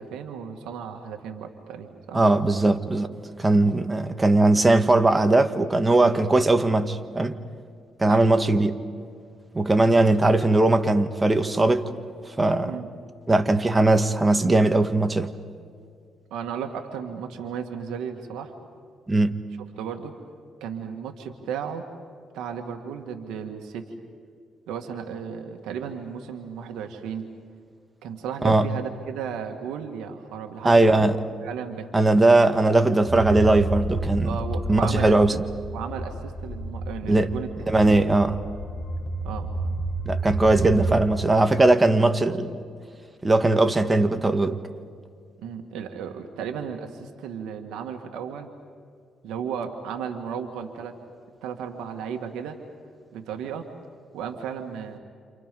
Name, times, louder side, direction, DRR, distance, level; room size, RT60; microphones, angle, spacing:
voice 1, 0.0-2.2 8.0-8.3 12.6-12.9 16.3-18.5 19.8-20.1 20.6-21.9 22.3-23.9 24.7-27.3 28.0-31.0 31.4-31.9 34.3-35.4 35.7-37.5 37.8-38.0 39.2-39.8 45.4-48.5 49.2-51.0 51.4-52.6 53.1-53.7 54.1-55.0, right 7 dB, 90° right, 1.9 m, -34 dB
voice 2, 2.1-3.1 3.4-7.4 8.0-8.8 9.5-11.9 12.4-12.8 13.3-15.3 19.1-19.3 28.4-28.7 30.6-31.2 31.9-34.3 34.7-35.3 37.1-37.3 37.7-38.4 40.0-42.6 43.2-44.6, right 2 dB, 20° right, 1.5 m, -19 dB
sound 1, 33.1-41.0, right 2 dB, 45° left, 4.3 m, -30 dB
29.5 x 28.0 x 5.4 m
cardioid pair, 90°, 0 cm